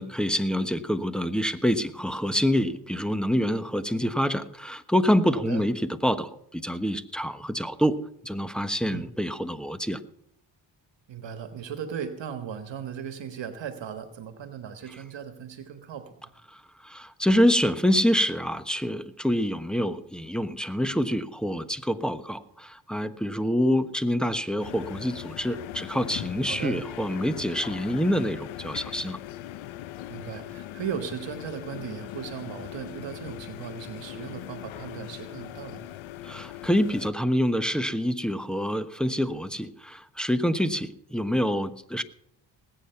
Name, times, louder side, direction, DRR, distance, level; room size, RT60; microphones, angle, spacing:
voice 1, 0.0-10.0 16.8-29.2 36.2-42.0, equal, ahead, 11 dB, 1.2 m, -26 dB
voice 2, 5.3-5.6 8.9-9.1 11.1-16.3 26.5-26.8 30.1-35.9, right 8 dB, 65° right, 8 dB, 1.5 m, -37 dB
sound 1, 24.6-37.1, left 13 dB, 75° left, 0.8 m, -40 dB
19.0 x 8.8 x 5.8 m, 0.71 s
supercardioid pair, 60°, 47 cm